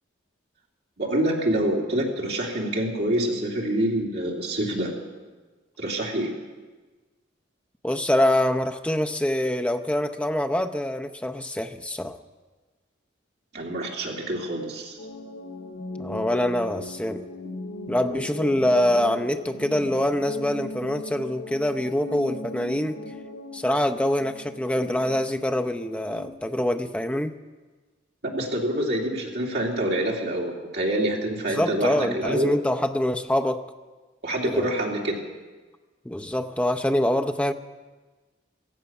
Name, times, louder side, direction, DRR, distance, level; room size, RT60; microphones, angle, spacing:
voice 1, 1.0-4.9 5.8-6.3 13.5-14.9 28.3-32.5 34.2-35.2, right 1 dB, 55° right, -2 dB, 2.8 m, -26 dB
voice 2, 7.8-12.2 16.0-17.3 17.9-23.0 23.5-27.4 31.5-33.7 34.4-34.7 36.0-37.5, left 1 dB, 5° left, 7 dB, 0.6 m, -25 dB
sound 1, 15.0-26.3, left 2 dB, 85° left, 1.8 m, -38 dB
16.5 x 15.0 x 5.9 m, 1.3 s
head